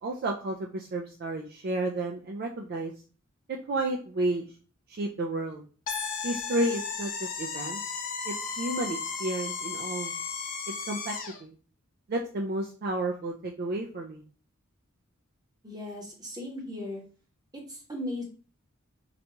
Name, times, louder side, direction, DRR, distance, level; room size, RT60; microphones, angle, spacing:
voice 1, 0.0-2.9 3.7-4.5 4.9-5.6 6.2-7.8 8.3-10.1 10.9-11.1 11.4-11.5 12.1-14.2, right 2 dB, 45° right, 1 dB, 0.3 m, -31 dB
sound 1, 5.9-11.4, left 5 dB, 40° left, 0.4 m, -34 dB
voice 2, 15.6-17.0 17.5-18.2, left 1 dB, 20° right, -1 dB, 0.9 m, -37 dB
4.0 x 2.2 x 2.8 m, 0.39 s
head